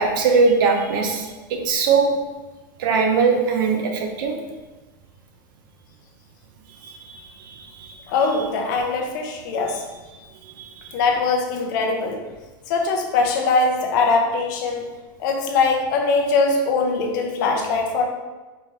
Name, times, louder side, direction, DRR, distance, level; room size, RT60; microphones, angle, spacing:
voice 1, 0.0-2.1 2.8-4.3 6.8-8.0, right 4 dB, 80° right, 2 dB, 0.8 m, -21 dB
voice 2, 8.1-9.8 10.9-12.2 12.7-14.9 15.2-18.1, left 4 dB, 65° left, 2 dB, 0.8 m, -21 dB
4.4 x 2.9 x 3.3 m, 1.2 s
supercardioid pair, 135°, 11 cm